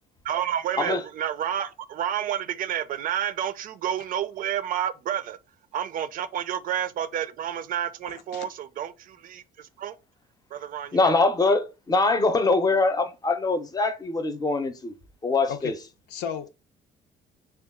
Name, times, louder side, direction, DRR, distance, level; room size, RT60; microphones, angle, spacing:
voice 1, 0.2-5.4 5.7-10.0 10.5-11.2, right 10 dB, 55° right, 0.4 m, -30 dB
voice 2, 8.1-8.5 15.5-15.7 16.1-16.5, left 8 dB, 80° left, 0.7 m, -34 dB
voice 3, 10.9-14.9 15.2-15.7, left 3 dB, 20° left, 0.6 m, -23 dB
3.7 x 2.3 x 3.5 m
cardioid pair, 110°, 17 cm